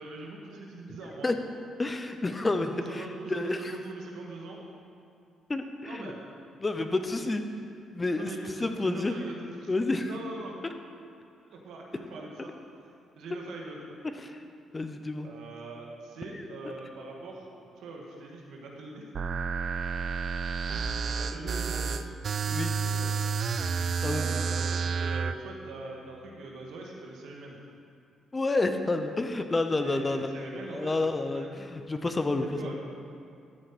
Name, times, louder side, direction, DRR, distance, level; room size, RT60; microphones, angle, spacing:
voice 1, 0.0-1.3 2.7-4.6 5.9-6.2 6.8-7.0 8.1-9.7 10.0-10.5 11.5-12.5 13.2-14.0 15.2-17.5 17.8-19.1 20.7-22.0 22.8-23.1 24.1-27.6 29.8-30.9 31.3-31.5 32.4-32.7, right 3 dB, 80° right, -1 dB, 1.7 m, -42 dB
voice 2, 1.8-3.7 5.5-6.1 6.6-7.4 7.9-8.3 8.6-9.1 9.7-10.1 13.3-13.4 14.0-14.4 14.7-15.3 16.3-16.7 22.5-22.8 24.0-24.4 28.3-32.6, left 2 dB, 25° left, 7 dB, 0.8 m, -30 dB
sound 1, 19.1-25.3, right 5 dB, 50° right, 0.5 m, -30 dB
13.0 x 8.1 x 4.3 m, 2.5 s
cardioid pair, 90°, 0 cm